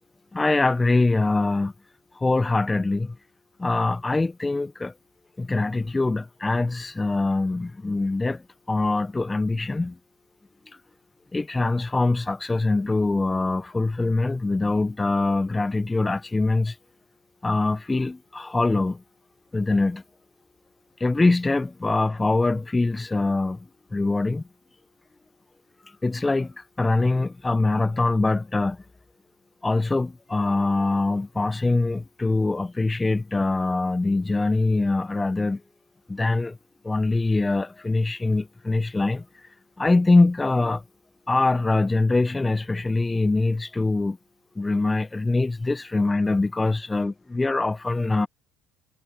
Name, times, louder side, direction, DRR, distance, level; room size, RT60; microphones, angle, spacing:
voice 1, 0.3-1.7 2.2-3.2 3.6-4.9 5.4-8.4 8.7-9.9 11.3-16.7 17.4-19.0 19.5-20.0 21.0-23.6 23.9-24.4 26.0-28.8 29.6-35.6 36.1-36.6 36.8-39.2 39.8-40.8 41.3-44.2 44.6-48.3, left 3 dB, 15° left, 1.2 m, -23 dB
hypercardioid pair, 65°, 0 cm